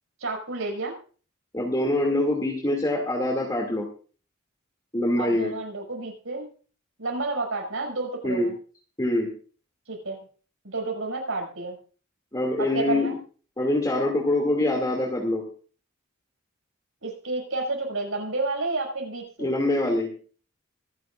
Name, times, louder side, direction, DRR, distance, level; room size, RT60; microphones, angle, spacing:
voice 1, 0.2-0.9 5.2-6.5 7.0-8.5 9.9-10.2 10.6-11.8 12.6-13.2 17.0-19.5, right 3 dB, 90° right, 0 dB, 6.4 m, -30 dB
voice 2, 1.5-3.9 4.9-5.5 8.2-8.5 9.0-9.3 12.3-13.2 13.6-15.4 19.4-20.1, left 1 dB, 20° left, -1 dB, 2.5 m, -24 dB
26.0 x 11.0 x 2.5 m, 0.40 s
head